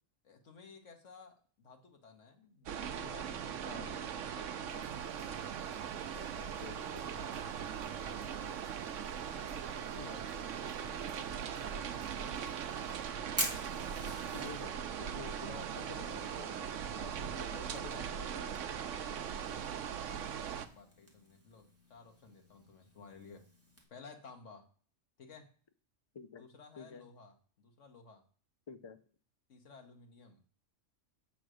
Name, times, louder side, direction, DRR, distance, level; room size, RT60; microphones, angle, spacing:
voice 1, 0.2-5.4 5.9-8.7 9.3-12.6 19.5-23.5 23.9-24.7 25.2-25.5 26.4-28.2 29.5-30.4, left 4 dB, 70° left, 3 dB, 1.6 m, -56 dB
sound 1, 2.7-20.7, right 8 dB, 80° right, 1.0 m, -40 dB
sound 2, 4.6-13.1, right 5 dB, 40° right, 1.6 m, -60 dB
voice 2, 6.6-7.1 10.0-10.3 14.3-18.8 26.1-26.4 26.8-27.1 28.7-29.0, left 5 dB, 45° left, 10 dB, 0.3 m, -50 dB
Fire, 12.3-23.8, right 1 dB, 10° right, 1.6 m, -47 dB
7.8 x 3.9 x 6.2 m, 0.43 s
omnidirectional pair, 1.3 m